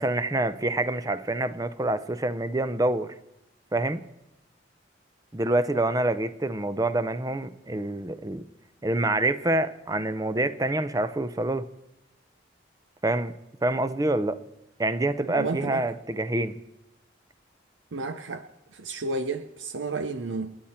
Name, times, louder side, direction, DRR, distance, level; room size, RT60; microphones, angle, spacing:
voice 1, 0.0-3.1 3.7-4.0 5.3-8.5 8.8-11.7 13.0-13.3 13.6-14.4 14.8-16.6, right 2 dB, 20° right, 13 dB, 0.6 m, -26 dB
voice 2, 15.3-15.8 17.9-18.5 18.7-20.6, right 3 dB, 80° right, 10 dB, 0.7 m, -31 dB
28.5 x 10.0 x 4.4 m, 0.89 s
head